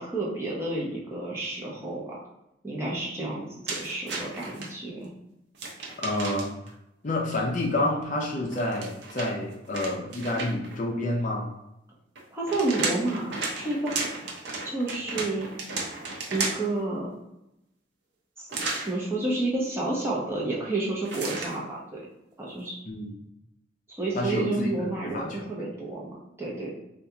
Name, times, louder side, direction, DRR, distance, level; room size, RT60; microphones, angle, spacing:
voice 1, 0.0-2.2 2.6-5.1 12.3-14.1 14.6-15.5 16.3-17.1 18.4-18.5 18.8-22.0 22.4-22.8 23.9-26.7, right 2 dB, 15° right, -5 dB, 0.7 m, -30 dB
sound 1, 3.7-4.7 5.5-6.7 8.5-10.8 12.2-16.8 18.5-18.9 21.0-21.6, right 3 dB, 65° right, 0.6 m, -34 dB
voice 2, 6.0-6.5 7.0-11.5 22.8-23.1 24.1-25.5, left 1 dB, 40° left, 0 dB, 0.5 m, -29 dB
3.5 x 2.4 x 2.8 m, 0.86 s
head